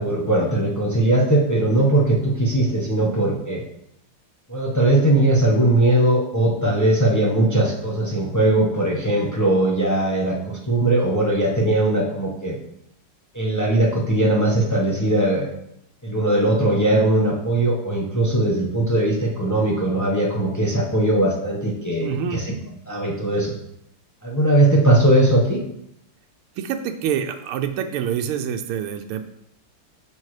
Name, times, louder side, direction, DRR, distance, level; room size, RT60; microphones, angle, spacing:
voice 1, 0.0-3.6 4.5-12.6 13.3-15.5 16.0-22.6 22.9-23.5 24.2-25.6, right 1 dB, 20° left, -3 dB, 0.4 m, -19 dB
voice 2, 22.0-22.4 26.6-29.2, right 8 dB, 85° right, 6 dB, 1.5 m, -26 dB
8.8 x 5.5 x 3.2 m, 0.76 s
omnidirectional pair, 2.3 m